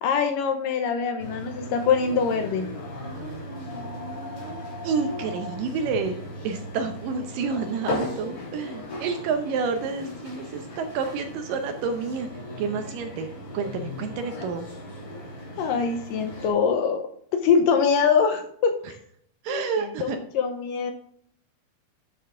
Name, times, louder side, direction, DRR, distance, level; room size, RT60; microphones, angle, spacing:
voice 1, 0.0-2.7 15.6-17.0 17.3-18.7 19.5-20.9, left 6 dB, 75° left, 6 dB, 2.3 m, -23 dB
sound 1, 1.2-16.5, left 1 dB, 55° left, 4.4 m, -37 dB
voice 2, 3.0-6.2 6.4-12.3 12.6-13.3 13.5-14.7 19.4-20.2, right 5 dB, 75° right, 6 dB, 2.2 m, -30 dB
10.0 x 7.0 x 3.6 m, 0.64 s
omnidirectional pair, 4.3 m